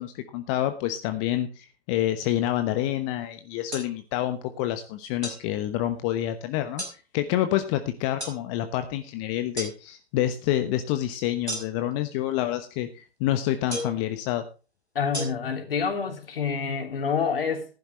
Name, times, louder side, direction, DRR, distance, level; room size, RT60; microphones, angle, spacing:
voice 1, 0.0-6.8 7.1-14.4, left 13 dB, 30° left, 1.1 m, -28 dB
sound 1, 3.7-3.9 5.2-5.4 6.8-7.0 8.2-8.4 9.6-9.7 11.5-11.9 13.7-14.0 15.1-15.2, equal, 90° right, 5.4 m, -33 dB
voice 2, 14.9-17.7, left 6 dB, 60° left, 3.3 m, -27 dB
14.5 x 12.0 x 3.2 m
figure-of-eight pair, 120°, 32 cm